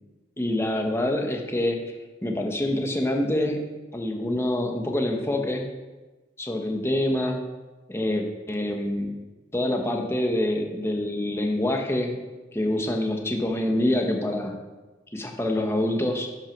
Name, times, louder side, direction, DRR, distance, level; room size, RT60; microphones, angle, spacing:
voice 1, 0.4-1.8 2.2-3.6 3.9-5.6 6.4-7.4 7.9-9.1 9.5-12.1 12.5-14.5 15.1-16.3, left 1 dB, 15° left, 2 dB, 1.2 m, -26 dB
10.5 x 6.1 x 6.0 m, 1.2 s
head